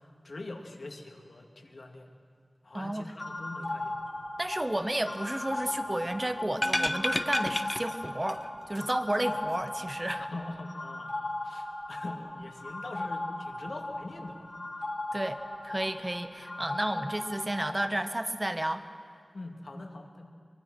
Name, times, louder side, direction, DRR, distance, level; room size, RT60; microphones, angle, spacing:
voice 1, 0.2-2.1 2.6-4.0 10.2-14.5 19.3-20.3, left 2 dB, 70° left, 3 dB, 2.2 m, -43 dB
voice 2, 2.7-3.1 4.4-10.3 15.1-15.4 15.6-18.9, right 1 dB, 25° right, 9 dB, 1.2 m, -32 dB
sound 1, 3.2-18.0, left 2 dB, 40° left, 2.8 m, -38 dB
sound 2, 6.5-8.5 8.7-8.8, left 1 dB, 20° left, 0.5 m, -31 dB
23.5 x 23.5 x 6.2 m, 2.2 s
wide cardioid pair, 65°, 0 cm